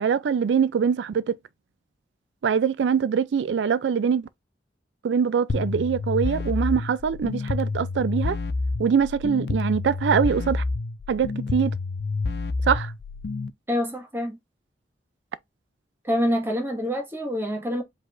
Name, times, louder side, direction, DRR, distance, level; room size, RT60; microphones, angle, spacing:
voice 1, 0.0-1.4 2.4-4.2 5.0-8.4 8.8-10.6 11.1-11.7 12.6-12.9, right 7 dB, 85° right, 0.3 m, -23 dB
sound 1, 5.5-13.5, left 3 dB, 65° left, 0.5 m, -28 dB
voice 2, 13.7-14.4 16.0-17.8, equal, 15° right, 1.6 m, -26 dB
5.0 x 3.9 x 2.4 m
head